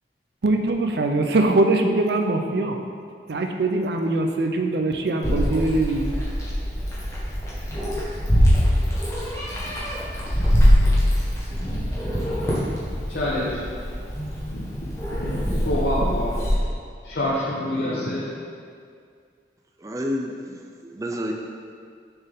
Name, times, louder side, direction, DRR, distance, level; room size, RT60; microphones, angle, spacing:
voice 1, 0.4-2.8 3.3-6.1, right 2 dB, 70° right, 4 dB, 0.5 m, -22 dB
Meow, 5.2-16.5, equal, 15° left, 1.2 m, -23 dB
voice 2, 13.1-13.6 14.5-14.6 15.1-15.3 15.6-16.3 17.0-18.2, left 1 dB, 75° left, -7 dB, 0.8 m, -26 dB
voice 3, 19.8-21.3, equal, 20° right, 1 dB, 0.4 m, -30 dB
6.7 x 4.5 x 3.6 m, 2.2 s
head